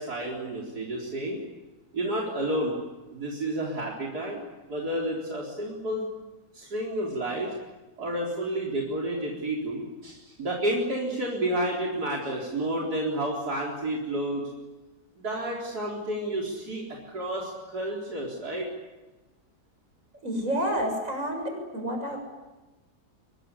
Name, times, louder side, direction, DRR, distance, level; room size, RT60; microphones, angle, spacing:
voice 1, 0.0-1.4 1.9-2.8 3.1-4.4 4.7-6.1 6.5-7.5 8.0-14.5 15.2-18.7, right 1 dB, 80° right, -3 dB, 4.6 m, -30 dB
voice 2, 20.2-22.2, equal, 55° right, 3 dB, 7.4 m, -29 dB
24.5 x 23.5 x 9.9 m, 1.1 s
omnidirectional pair, 1.7 m